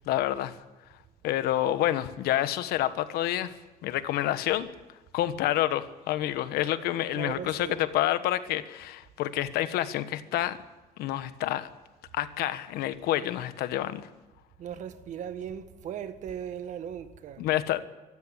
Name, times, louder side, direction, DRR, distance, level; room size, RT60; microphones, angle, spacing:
voice 1, 0.0-0.6 1.2-3.6 3.8-4.7 5.1-10.6 11.0-11.7 12.1-14.0 17.4-17.8, left 13 dB, 85° left, 1.3 m, -28 dB
voice 2, 7.1-7.8 14.6-17.5, right 8 dB, 50° right, 1.6 m, -38 dB
23.5 x 13.5 x 9.9 m
cardioid pair, 160°, 16 cm